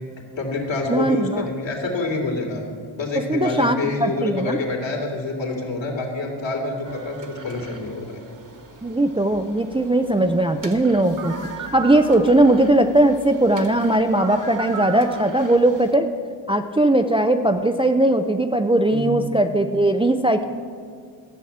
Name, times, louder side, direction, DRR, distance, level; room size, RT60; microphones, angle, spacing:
voice 1, 0.4-8.2 18.9-19.2, left 3 dB, 60° left, 0 dB, 2.9 m, -27 dB
voice 2, 0.9-1.5 3.3-4.6 8.8-16.1 16.5-20.4, right 1 dB, 10° right, 6 dB, 0.5 m, -19 dB
sound 1, 6.8-15.9, right 5 dB, 40° right, 1.5 m, -38 dB
13.5 x 6.4 x 8.6 m, 2.2 s
wide cardioid pair, 100°, 49 cm